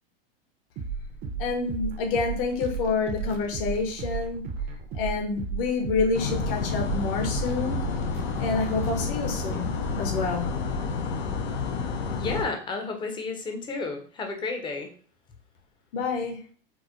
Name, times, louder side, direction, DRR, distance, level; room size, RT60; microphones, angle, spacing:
sound 1, 0.8-10.4, right 5 dB, 30° right, 0.5 m, -35 dB
voice 1, 1.4-4.4 4.9-7.8 8.4-10.5 15.9-16.4, left 4 dB, 60° left, 3 dB, 0.9 m, -28 dB
sound 2, 6.1-12.5, left 4 dB, 90° left, 0.5 m, -30 dB
voice 2, 12.1-14.9, left 4 dB, 15° left, 5 dB, 0.5 m, -32 dB
4.2 x 2.0 x 2.4 m, 0.42 s
supercardioid pair, 125°, 30 cm